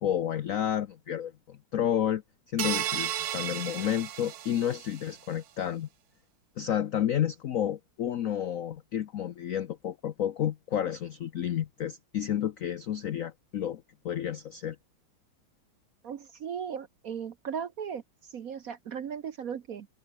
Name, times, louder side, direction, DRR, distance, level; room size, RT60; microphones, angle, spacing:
voice 1, 0.0-5.9 6.6-14.8, left 10 dB, 80° left, 0.7 m, -31 dB
sound 1, 2.6-5.1, right 11 dB, 75° right, 2.0 m, -33 dB
voice 2, 16.0-18.0 18.3-19.9, right 7 dB, 55° right, 1.0 m, -37 dB
omnidirectional pair, 2.3 m